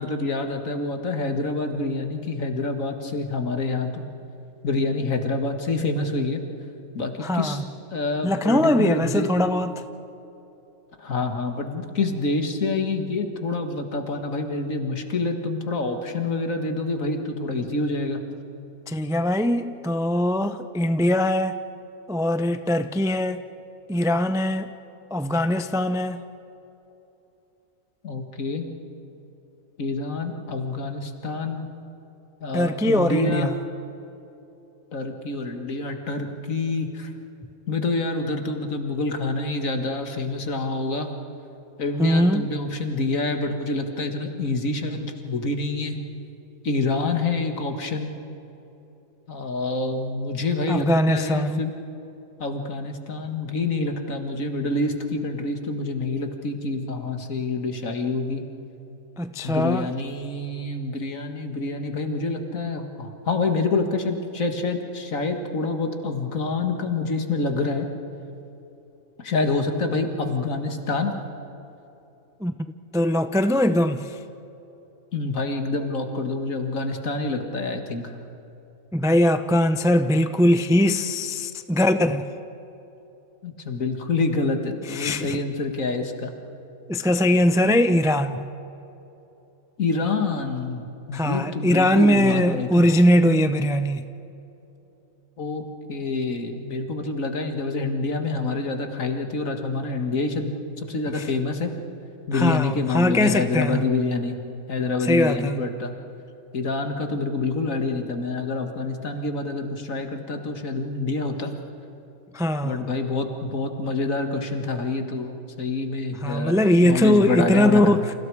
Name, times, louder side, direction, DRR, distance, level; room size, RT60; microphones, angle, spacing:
voice 1, 0.0-4.1 4.6-6.4 6.9-7.6 7.9-9.3 11.0-18.2 28.0-28.7 29.8-31.7 32.4-33.5 34.9-37.1 37.7-41.1 41.8-46.0 46.6-48.1 49.3-51.7 52.4-58.4 59.4-67.9 69.2-71.1 75.1-78.1 83.4-86.3 89.8-92.8 95.4-95.6 95.9-101.7 102.3-104.4 104.7-105.9 106.5-111.5 112.6-117.9, left 3 dB, 70° left, 5 dB, 2.2 m, -27 dB
voice 2, 7.2-7.6 8.2-9.7 18.9-21.6 22.1-23.4 23.9-24.7 25.1-26.2 32.5-33.5 42.0-42.5 50.7-51.6 59.2-59.9 72.4-72.5 72.9-74.2 78.9-82.3 84.9-85.4 86.9-88.4 91.1-94.0 101.1-101.3 102.3-103.8 105.0-105.6 112.3-112.9 116.2-118.1, left 1 dB, 5° right, 10 dB, 0.4 m, -21 dB
29.5 x 27.5 x 4.8 m, 3.0 s
omnidirectional pair, 1.4 m